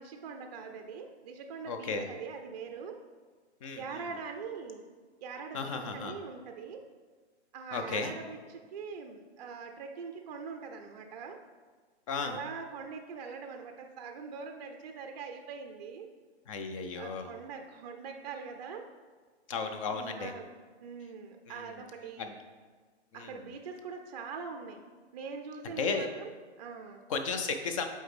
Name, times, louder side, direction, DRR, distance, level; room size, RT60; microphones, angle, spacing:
voice 1, 0.0-3.0 3.8-4.9 5.2-6.8 7.5-11.4 12.2-16.1 16.9-18.8 19.9-20.5 20.8-22.3 23.1-24.8 25.1-26.3 26.6-27.1, right 5 dB, 40° right, 4 dB, 0.4 m, -43 dB
voice 2, 1.7-2.1 3.6-4.1 5.5-6.1 7.7-8.1 12.1-12.4 16.5-17.3 19.5-20.3 21.5-21.8 22.2-22.3 23.1-23.4 25.6-26.1 27.1-27.9, left 4 dB, 30° left, 6 dB, 0.5 m, -34 dB
7.6 x 4.4 x 3.3 m, 1.5 s
figure-of-eight pair, 125°, 34 cm